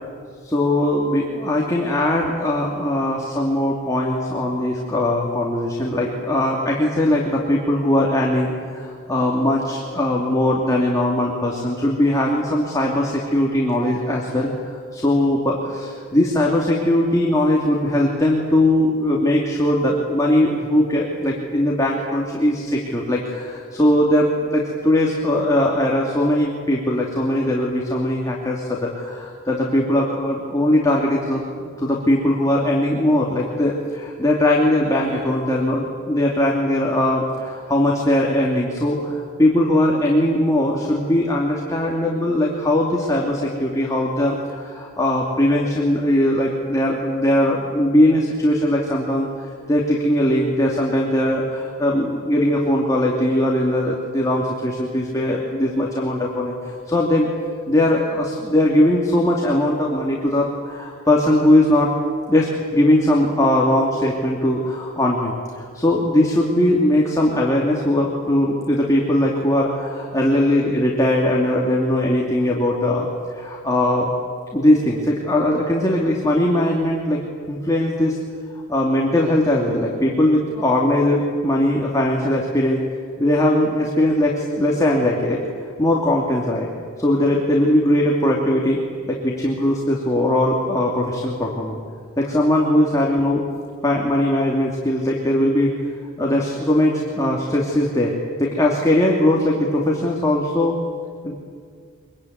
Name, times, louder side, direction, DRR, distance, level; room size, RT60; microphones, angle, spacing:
voice 1, 0.4-31.4 31.8-57.3 57.7-61.9 62.3-73.1 73.3-74.1 74.5-77.2 77.5-78.2 78.5-82.8 83.2-85.4 85.8-86.7 87.0-88.8 89.1-91.8 92.2-93.4 93.8-95.7 96.2-98.1 98.4-100.7 101.2-101.3, left 1 dB, 15° left, -2 dB, 2.7 m, -20 dB
25.0 x 22.5 x 9.5 m, 2.1 s
head